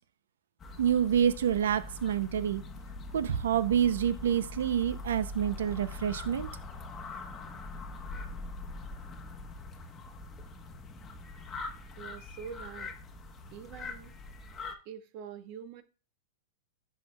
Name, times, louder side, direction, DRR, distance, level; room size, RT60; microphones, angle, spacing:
sound 1, 0.6-14.7, left 3 dB, 20° left, 1.1 m, -43 dB
voice 1, 0.8-2.6 3.1-6.5, right 9 dB, 85° right, 0.5 m, -27 dB
voice 2, 12.0-12.9 13.5-14.2 14.9-15.8, right 7 dB, 45° right, 0.9 m, -45 dB
10.5 x 5.5 x 2.3 m
hypercardioid pair, 135°, 0 cm